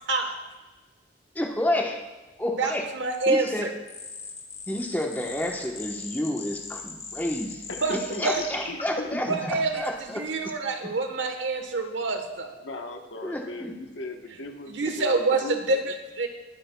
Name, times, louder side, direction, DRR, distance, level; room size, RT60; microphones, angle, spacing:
voice 1, 1.3-2.0 2.4-2.8 3.3-3.7 4.7-7.6 8.2-10.2 13.2-13.7, left 1 dB, 10° left, 0 dB, 1.1 m, -30 dB
voice 2, 2.6-3.7 7.8-8.0 8.2-8.4 9.3-9.8 10.1-12.5 14.7-16.3, right 3 dB, 85° right, 5 dB, 1.3 m, -26 dB
sound 1, 3.9-9.7, left 3 dB, 35° left, 1.8 m, -38 dB
voice 3, 7.7-9.3 12.6-15.8, left 2 dB, 90° left, 3 dB, 1.2 m, -38 dB
20.5 x 8.7 x 2.3 m, 1.2 s
head